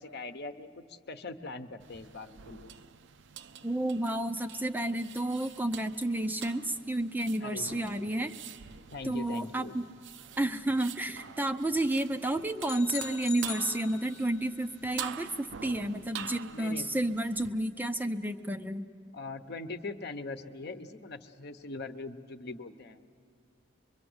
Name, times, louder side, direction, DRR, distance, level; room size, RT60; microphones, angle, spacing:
voice 1, 0.0-2.7 7.4-7.7 8.9-9.7 16.5-16.9 19.1-23.0, left 3 dB, 55° left, 8 dB, 0.9 m, -41 dB
sound 1, 1.8-17.5, right 8 dB, 60° right, 0.5 m, -46 dB
voice 2, 3.6-8.3 9.0-9.9 10.4-18.9, right 1 dB, 10° right, 8 dB, 0.5 m, -31 dB
sound 2, 12.7-14.5, left 9 dB, 85° left, 0.9 m, -41 dB
24.0 x 23.0 x 7.9 m, 2.6 s
head